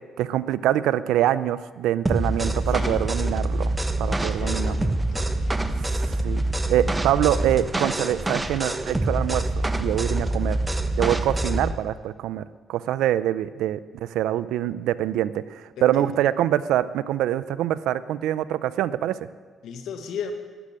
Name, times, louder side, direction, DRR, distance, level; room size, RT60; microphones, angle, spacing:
voice 1, 0.2-4.8 5.8-6.4 6.7-10.6 11.0-19.2, right 12 dB, 90° right, 15 dB, 0.5 m, -25 dB
sound 1, 2.1-11.7, right 1 dB, 15° right, 1.0 m, -25 dB
voice 2, 2.7-3.1 4.2-5.8 15.8-16.1 19.6-20.3, left 6 dB, 80° left, 6 dB, 1.5 m, -36 dB
13.0 x 9.9 x 7.5 m, 1.5 s
cardioid pair, 90°, 0 cm